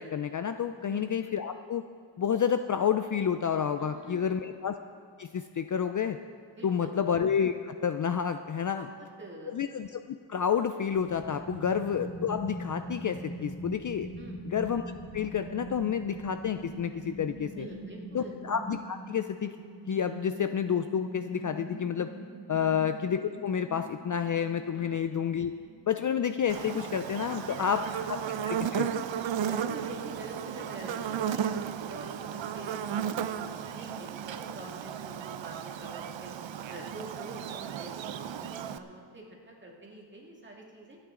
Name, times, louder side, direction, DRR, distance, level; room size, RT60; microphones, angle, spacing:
voice 1, 0.0-1.8 2.2-4.7 5.2-6.2 6.6-8.8 9.5-9.9 10.3-14.1 14.5-14.8 15.1-17.7 18.1-19.5 19.9-22.1 22.5-25.5 25.8-27.8 28.1-28.2 28.4-28.9, left 7 dB, 45° left, 9 dB, 0.4 m, -29 dB
voice 2, 3.8-4.4 6.6-6.9 8.7-8.8 9.2-9.5 11.6-11.7 14.2-14.4 17.5-18.3 22.5-22.8 24.7-25.0 27.3-27.8 29.4-36.3 36.7-41.0, right 1 dB, 25° right, -1 dB, 2.0 m, -46 dB
sound 1, 10.8-26.4 26.6-26.7, right 2 dB, 20° left, 2.2 m, -43 dB
Buzz, 26.5-38.8, right 8 dB, 75° right, 0.7 m, -34 dB
26.5 x 8.9 x 3.7 m, 2.3 s
wide cardioid pair, 175°, 45 cm